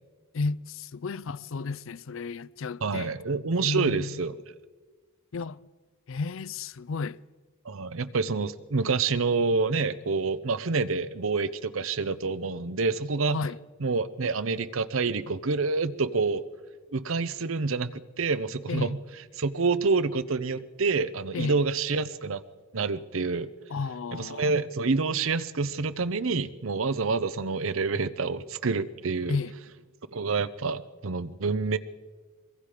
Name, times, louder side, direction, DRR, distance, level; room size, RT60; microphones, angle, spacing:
voice 1, 0.3-3.1 3.6-4.2 5.3-5.6 6.1-7.2 13.3-13.6 18.7-19.0 21.3-21.6 23.7-24.5 29.3-29.5, left 4 dB, 65° left, 0.5 m, -32 dB
voice 2, 2.8-4.3 7.7-13.4 13.8-16.4 16.9-19.0 19.4-22.4 22.7-23.5 24.2-29.4 30.1-31.8, right 4 dB, 65° right, 0.7 m, -27 dB
23.0 x 22.5 x 5.0 m
head